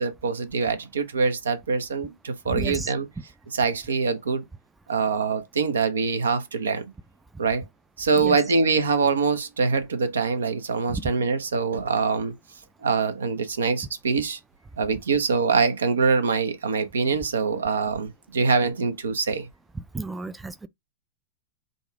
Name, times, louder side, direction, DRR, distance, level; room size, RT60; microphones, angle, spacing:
voice 1, 0.0-3.1 3.5-4.4 4.9-6.8 7.4-7.6 8.0-12.3 12.8-14.4 14.8-19.5, right 4 dB, 80° right, 0.8 m, -24 dB
voice 2, 2.5-2.9 8.2-8.4 10.9-11.1 19.8-20.7, right 3 dB, 10° right, 0.4 m, -32 dB
3.9 x 2.4 x 4.7 m
hypercardioid pair, 110°, 0 cm